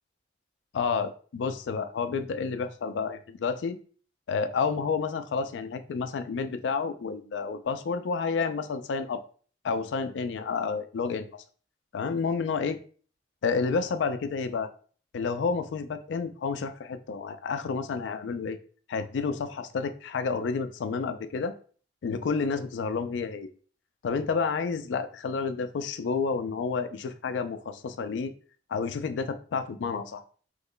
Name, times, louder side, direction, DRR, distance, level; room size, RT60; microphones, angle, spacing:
voice 1, 0.7-3.8 4.3-9.2 9.6-11.3 11.9-12.8 13.4-14.7 15.1-18.6 18.9-21.5 22.0-23.5 24.0-28.3 28.7-30.2, left 5 dB, 85° left, 9 dB, 0.3 m, -30 dB
3.0 x 2.1 x 3.7 m, 0.43 s
head